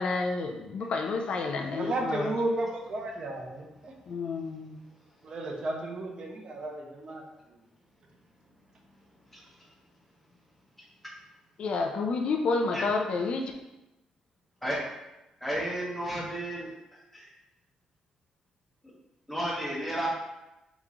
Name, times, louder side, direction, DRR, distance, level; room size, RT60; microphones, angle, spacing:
voice 1, 0.0-2.3 4.1-4.8 11.6-13.4, left 4 dB, 55° left, 3 dB, 0.4 m, -30 dB
voice 2, 1.7-3.9 5.2-7.2, right 2 dB, 45° right, 0 dB, 0.8 m, -33 dB
voice 3, 15.4-16.7 17.1-17.3 19.3-20.1, equal, 5° left, -6 dB, 1.3 m, -32 dB
3.5 x 3.0 x 3.7 m, 0.98 s
cardioid pair, 120°, 2 cm